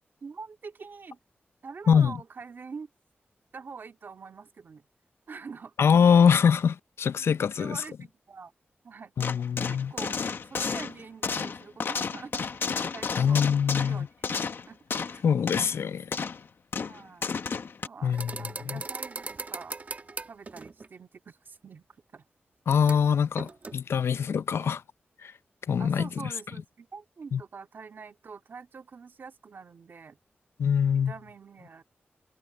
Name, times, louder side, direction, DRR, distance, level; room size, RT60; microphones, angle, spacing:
voice 1, 0.2-1.2 1.6-2.9 3.5-4.9 5.3-5.7 7.4-8.5 8.8-9.1 9.9-10.2 10.5-13.4 13.8-14.3 14.7-15.2 16.9-17.3 17.9-19.8 20.3-21.9 22.1-22.3 24.6-24.8 25.8-30.2 30.9-31.8, right 5 dB, 55° right, 2.2 m, -45 dB
voice 2, 5.8-7.8 9.2-9.9 13.2-14.1 15.2-16.2 18.0-18.8 22.7-24.8 25.2-25.3 25.7-26.3 27.3-27.4 30.6-31.1, left 7 dB, 80° left, 0.5 m, -24 dB
sound 1, 9.2-15.2 15.5-15.7 16.1-16.5 16.7-17.9, left 5 dB, 60° left, 1.0 m, -32 dB
sound 2, 18.1-20.9 22.9-23.0 23.4-23.7, right 3 dB, 35° right, 1.2 m, -38 dB
wide cardioid pair, 155°, 4 cm